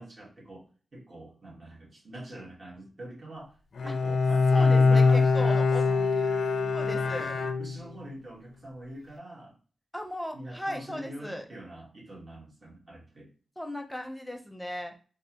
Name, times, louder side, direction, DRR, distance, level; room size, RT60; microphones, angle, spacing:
voice 1, 0.0-3.5 3.8-7.2 7.6-9.6 10.3-13.3, right 1 dB, 50° right, -3 dB, 1.6 m, -44 dB
Bowed string instrument, 3.8-8.1, left 4 dB, 80° left, 0.4 m, -23 dB
voice 2, 4.5-5.8 6.7-7.3 9.9-11.4 13.6-14.9, left 1 dB, 5° left, 4 dB, 0.7 m, -36 dB
3.3 x 2.4 x 2.9 m, 0.37 s
cardioid pair, 60°, 0 cm